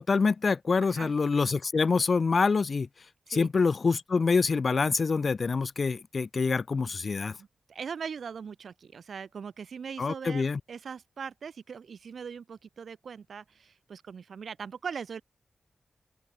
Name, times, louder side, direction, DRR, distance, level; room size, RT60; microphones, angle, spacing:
voice 1, 0.0-2.9 3.3-7.4 10.0-10.6, left 4 dB, 60° left, 1.3 m, -26 dB
voice 2, 7.4-15.2, right 6 dB, 80° right, 2.9 m, -40 dB
open air
cardioid pair, 60°, 0 cm